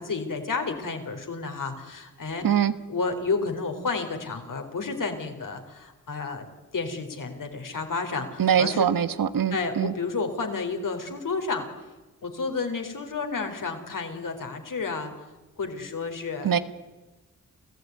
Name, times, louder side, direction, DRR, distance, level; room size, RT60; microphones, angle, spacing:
voice 1, 0.0-2.5 2.9-6.5 6.7-8.9 9.5-11.6 12.2-15.2 15.6-16.6, left 4 dB, 65° left, 5 dB, 4.3 m, -31 dB
voice 2, 8.4-9.9 16.4-16.6, right 9 dB, 75° right, 13 dB, 1.4 m, -23 dB
28.0 x 15.5 x 9.6 m, 1.2 s
supercardioid pair, 40°, 34 cm